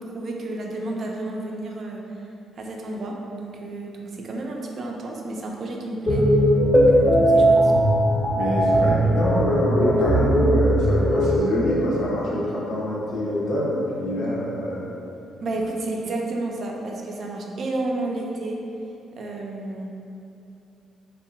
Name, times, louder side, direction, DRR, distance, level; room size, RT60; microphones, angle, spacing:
voice 1, 0.0-2.3 2.6-6.3 6.7-7.7 15.4-18.6 19.2-19.9, right 2 dB, 55° right, 0 dB, 0.3 m, -31 dB
sound 1, 6.1-11.4, right 1 dB, 20° left, 0.4 m, -18 dB
voice 2, 8.3-14.9, left 1 dB, 75° left, -6 dB, 0.6 m, -25 dB
2.8 x 2.1 x 2.5 m, 2.7 s
cardioid pair, 90°, 0 cm